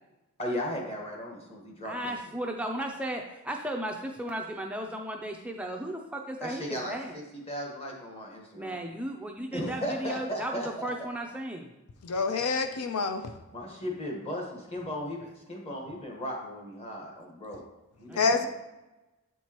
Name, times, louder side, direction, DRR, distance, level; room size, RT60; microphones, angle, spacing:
voice 1, 0.4-2.1 6.4-8.8 9.5-10.9 13.5-17.6 18.0-18.5, equal, 25° left, 0 dB, 1.2 m, -36 dB
voice 2, 1.8-6.6 6.9-7.1 8.6-11.7 18.1-18.2, right 1 dB, 5° right, 1 dB, 0.3 m, -35 dB
voice 3, 12.0-13.2 18.2-18.5, left 4 dB, 85° left, 8 dB, 0.5 m, -27 dB
8.0 x 4.5 x 2.9 m, 1.0 s
head